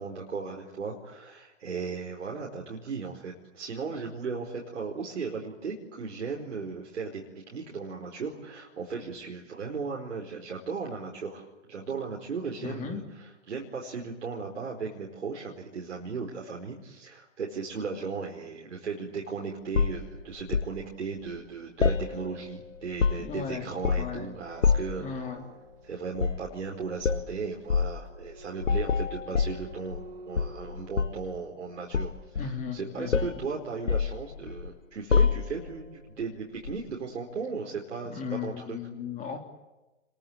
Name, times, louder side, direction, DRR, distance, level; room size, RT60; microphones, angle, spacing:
voice 1, 0.0-13.0 13.5-25.2 25.8-30.0 30.3-35.9 36.2-38.8, right 5 dB, 70° right, -1 dB, 4.8 m, -36 dB
voice 2, 12.6-13.0 23.2-23.7 24.0-24.3 25.0-25.4 32.4-33.3 38.1-39.4, left 7 dB, 20° left, 4 dB, 3.4 m, -36 dB
sound 1, 19.7-20.8 21.8-22.5 22.8-23.4 23.8-24.2 24.6-25.0 26.2-26.5 27.0-27.3 27.7-28.0 28.6-30.1 30.4-31.3 31.9-32.8 33.1-33.4 33.9-34.7 35.1-35.7 36.7-36.8, left 5 dB, 85° left, 1.3 m, -26 dB
sound 2, 24.3-31.2, right 2 dB, 45° right, 3.3 m, -50 dB
29.5 x 22.5 x 8.8 m, 1.0 s
figure-of-eight pair, 125°, 37 cm